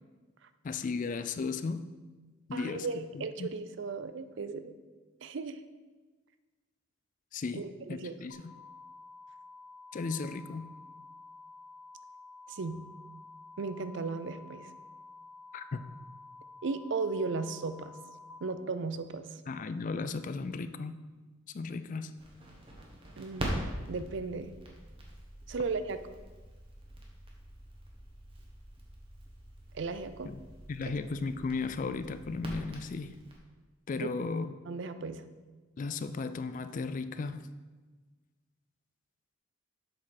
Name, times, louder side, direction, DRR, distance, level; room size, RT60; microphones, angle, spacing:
voice 1, 0.6-1.9 2.5-3.5 7.3-8.5 9.9-10.7 15.5-15.8 19.5-21.0 21.5-22.1 30.2-30.4 30.7-33.1 33.9-34.5 35.8-37.4, left 4 dB, 40° left, 11 dB, 0.3 m, -35 dB
voice 2, 2.5-4.7 5.2-5.6 7.6-8.3 12.5-12.8 13.6-14.7 16.6-17.9 18.4-19.2 23.2-23.5 23.9-24.5 25.5-26.0 29.7-30.3 30.9-31.0 34.7-35.2, right 4 dB, 60° right, 11 dB, 0.5 m, -36 dB
sound 1, 8.3-18.3, left 3 dB, 60° left, 1.1 m, -51 dB
Crackle, 22.2-33.4, right 1 dB, 25° right, 1.2 m, -43 dB
7.6 x 6.2 x 4.3 m, 1.3 s
head